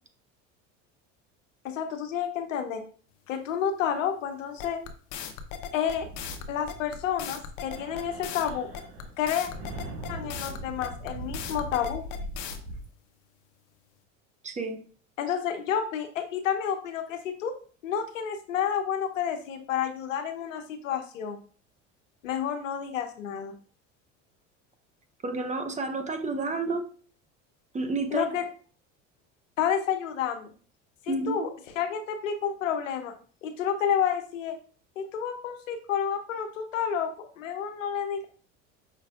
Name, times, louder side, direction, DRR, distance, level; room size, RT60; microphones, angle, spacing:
voice 1, 1.6-2.8 3.3-4.8 5.7-6.1 6.5-8.7 9.2-9.5 10.1-12.0 15.2-17.5 17.8-21.4 22.2-23.5 28.1-28.5 29.6-30.5 31.0-31.5 31.8-33.1 33.4-34.6 35.0-38.3, left 8 dB, 90° left, 7 dB, 0.8 m, -30 dB
sound 1, 4.6-12.6, left 8 dB, 55° left, 0.8 m, -38 dB
sound 2, 5.9-7.3 7.6-12.8, right 1 dB, 70° right, 1.4 m, -41 dB
voice 2, 14.4-14.8 25.2-26.9 27.7-28.3 31.1-31.4, right 3 dB, 20° right, 7 dB, 0.7 m, -30 dB
5.7 x 3.3 x 2.4 m, 0.43 s
hypercardioid pair, 80°, 38 cm